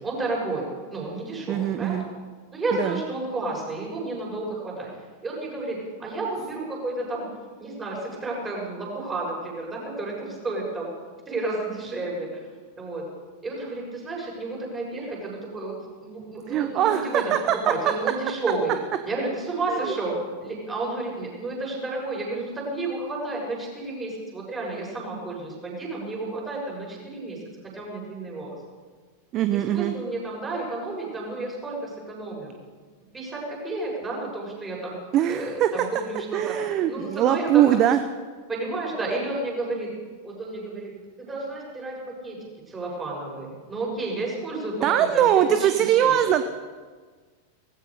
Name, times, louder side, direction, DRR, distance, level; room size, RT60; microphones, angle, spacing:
voice 1, 0.0-1.9 2.5-4.9 5.2-7.3 7.6-10.9 11.2-12.4 12.7-13.1 13.4-15.7 16.0-17.3 17.6-18.7 19.0-27.4 27.7-28.6 29.5-32.5 33.1-34.9 35.3-36.6 36.9-37.8 38.5-39.9 40.2-40.9 41.2-42.4 42.7-46.2, right 2 dB, 15° right, -3 dB, 6.9 m, -31 dB
voice 2, 1.5-2.1 2.8-3.0 16.5-17.5 19.7-19.9 29.3-29.9 35.1-35.7 36.3-38.0 44.8-46.4, right 11 dB, 35° right, 10 dB, 0.7 m, -22 dB
18.5 x 15.5 x 5.0 m, 1.5 s
figure-of-eight pair, 90°, 0 cm